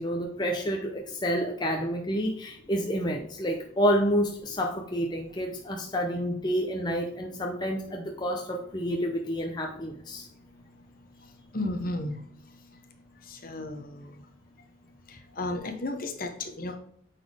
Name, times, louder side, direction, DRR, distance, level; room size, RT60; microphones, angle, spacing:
voice 1, 0.0-10.3, equal, 20° left, 1 dB, 0.7 m, -29 dB
voice 2, 11.5-12.2 13.3-14.1 15.4-16.8, left 2 dB, 45° left, 5 dB, 1.0 m, -33 dB
8.8 x 4.2 x 3.4 m, 0.68 s
head